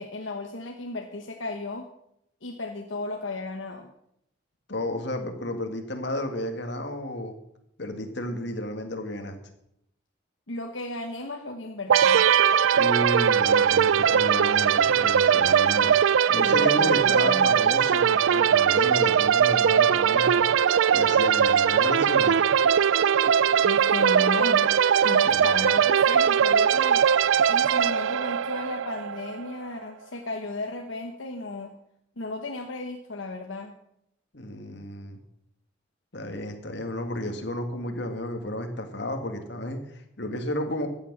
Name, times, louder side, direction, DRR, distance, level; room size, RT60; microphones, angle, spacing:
voice 1, 0.0-1.9 2.4-3.9 10.5-12.3 16.4-17.7 23.6-24.7 25.0-27.0 27.4-31.7 32.2-33.7, left 2 dB, 80° left, 3 dB, 1.2 m, -34 dB
voice 2, 4.7-7.3 7.8-9.4 12.7-20.5 20.9-22.5 25.3-25.7 34.3-35.2 36.1-40.9, left 1 dB, 60° left, 5 dB, 2.0 m, -32 dB
sound 1, 11.9-29.5, right 8 dB, 80° right, 0.4 m, -20 dB
14.5 x 9.2 x 6.1 m, 0.75 s
head